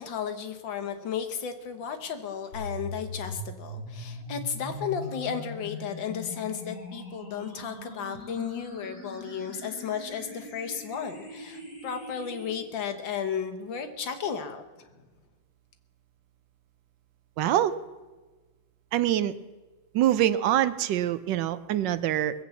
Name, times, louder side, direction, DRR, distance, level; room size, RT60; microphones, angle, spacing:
voice 1, 0.0-14.9, left 7 dB, 75° left, 7 dB, 1.9 m, -34 dB
sound 1, 2.5-12.5, left 1 dB, 55° left, 7.4 m, -41 dB
voice 2, 17.4-17.8 18.9-19.4 19.9-22.3, right 12 dB, 75° right, 15 dB, 1.2 m, -24 dB
20.5 x 8.0 x 7.0 m, 1.3 s
omnidirectional pair, 2.1 m